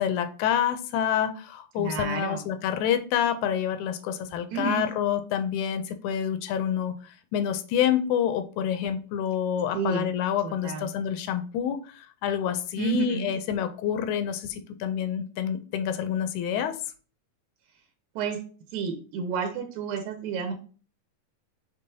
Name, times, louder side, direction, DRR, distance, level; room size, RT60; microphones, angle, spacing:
voice 1, 0.0-7.0 7.3-16.8, left 9 dB, 80° left, 9 dB, 1.8 m, -27 dB
voice 2, 1.8-2.5 4.5-4.8 9.7-10.2 10.4-10.9 12.8-13.3 18.2-18.4 18.7-20.5, right 6 dB, 75° right, 5 dB, 1.9 m, -31 dB
5.4 x 3.7 x 2.7 m, 0.39 s
omnidirectional pair, 3.7 m